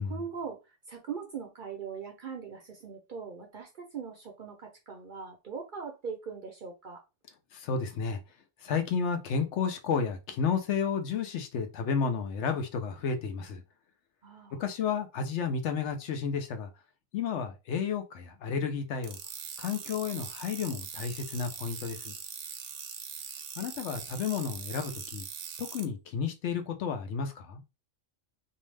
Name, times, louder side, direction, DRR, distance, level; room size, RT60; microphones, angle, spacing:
voice 1, 0.0-7.0 14.2-14.6, right 6 dB, 55° right, 0.6 m, -41 dB
voice 2, 7.5-8.2 8.6-13.6 14.6-16.7 17.1-19.2 19.6-22.1 23.6-25.2 25.6-27.6, left 6 dB, 70° left, 0.8 m, -32 dB
sound 1, 19.0-25.8, right 7 dB, 85° right, 1.0 m, -42 dB
2.7 x 2.0 x 3.1 m
omnidirectional pair, 1.3 m